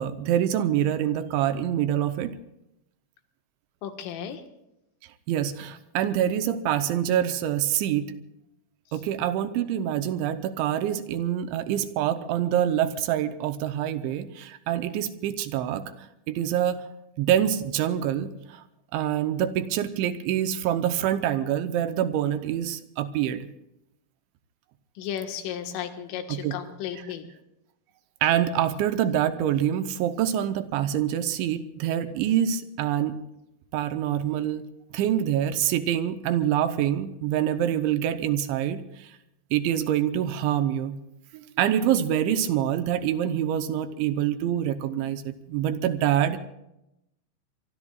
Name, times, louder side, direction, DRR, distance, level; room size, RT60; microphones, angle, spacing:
voice 1, 0.0-2.3 5.3-8.1 8.9-16.8 17.2-18.6 18.9-23.5 26.3-26.6 28.2-33.2 33.7-34.7 34.9-39.1 39.5-41.0 41.3-46.4, right 10 dB, 80° right, 9 dB, 3.0 m, -26 dB
voice 2, 3.8-4.4 8.9-9.0 25.0-27.3, left 9 dB, 80° left, 5 dB, 4.1 m, -34 dB
24.5 x 24.0 x 2.4 m, 0.85 s
omnidirectional pair, 5.6 m